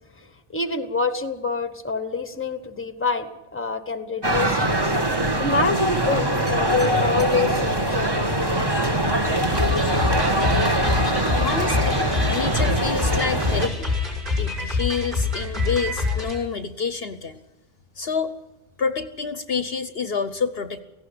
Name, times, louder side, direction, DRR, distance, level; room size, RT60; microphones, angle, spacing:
voice 1, 0.5-4.9 5.4-8.4, left 3 dB, 10° left, 10 dB, 1.2 m, -26 dB
sound 1, 4.2-13.7, right 1 dB, 20° right, 1.5 m, -22 dB
sound 2, 9.5-16.4, left 4 dB, 45° right, 5.9 m, -26 dB
voice 2, 11.4-13.9 14.4-17.4 18.0-18.3 18.8-20.8, left 5 dB, 55° left, 11 dB, 1.1 m, -28 dB
18.0 x 16.0 x 10.0 m, 1.0 s
omnidirectional pair, 1.2 m